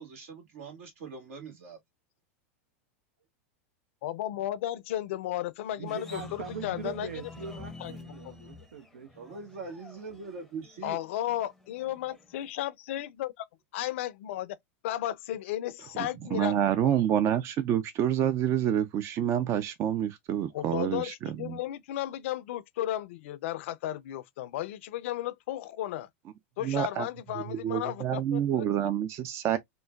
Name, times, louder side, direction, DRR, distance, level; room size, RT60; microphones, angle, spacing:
voice 1, 0.0-1.8 9.1-11.0, right 4 dB, 75° right, 1.6 m, -42 dB
voice 2, 4.0-7.1 7.8-7.9 8.2-8.5 10.8-13.5 13.7-14.6 14.8-16.5 16.8-17.0 20.5-26.1 26.6-28.9, left 13 dB, 70° left, 0.4 m, -34 dB
voice 3, 5.7-9.1, right 6 dB, 90° right, 0.7 m, -41 dB
sound 1, 5.9-12.5, left 3 dB, ahead, 0.6 m, -48 dB
voice 4, 16.0-21.6 26.6-27.1 27.5-29.6, right 10 dB, 40° right, 0.5 m, -28 dB
3.7 x 2.1 x 2.2 m
hypercardioid pair, 105°, 7 cm